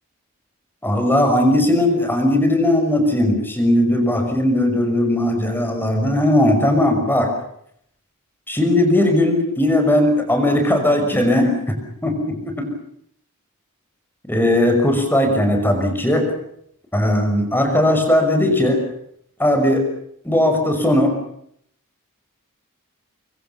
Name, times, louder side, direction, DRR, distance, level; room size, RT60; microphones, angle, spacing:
voice 1, 0.8-7.3 8.5-11.8 12.0-12.7 14.3-16.3 16.9-18.8 19.4-19.9 20.2-21.1, left 1 dB, 10° left, 5 dB, 5.8 m, -18 dB
25.0 x 24.0 x 7.0 m, 0.69 s
head